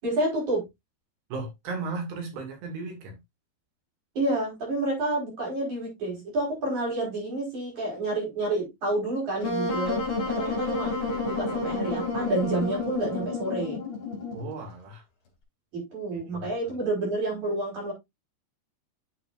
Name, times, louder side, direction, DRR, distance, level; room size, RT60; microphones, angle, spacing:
voice 1, 0.0-0.6 4.1-10.0 10.3-10.9 11.2-13.8 15.7-17.9, right 2 dB, 45° right, 6.5 m, -29 dB
voice 2, 1.3-3.2 14.3-15.0 16.1-16.5, right 3 dB, 85° right, 4.8 m, -35 dB
Wind instrument woodwind instrument, 9.4-14.5, left 3 dB, 35° left, 3.8 m, -30 dB
10.5 x 6.9 x 2.6 m
omnidirectional pair, 4.7 m